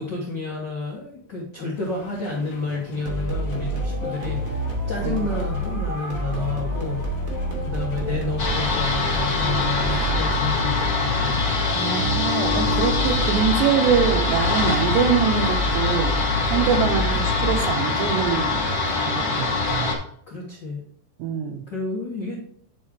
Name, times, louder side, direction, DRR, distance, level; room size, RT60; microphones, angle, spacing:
voice 1, 0.0-7.1 7.6-11.4 20.3-20.8 21.7-22.4, left 3 dB, 90° left, -3 dB, 0.9 m, -30 dB
sound 1, 1.7-18.5, left 4 dB, 75° left, 1.5 m, -43 dB
sound 2, 3.1-18.0, equal, 55° right, 0.9 m, -27 dB
sound 3, 8.4-19.9, left 4 dB, 50° left, 1.1 m, -24 dB
voice 2, 11.7-16.2 16.5-18.6 19.0-20.0 21.2-21.6, right 7 dB, 80° right, 5 dB, 3.1 m, -24 dB
9.3 x 3.8 x 4.7 m, 0.63 s
omnidirectional pair, 4.8 m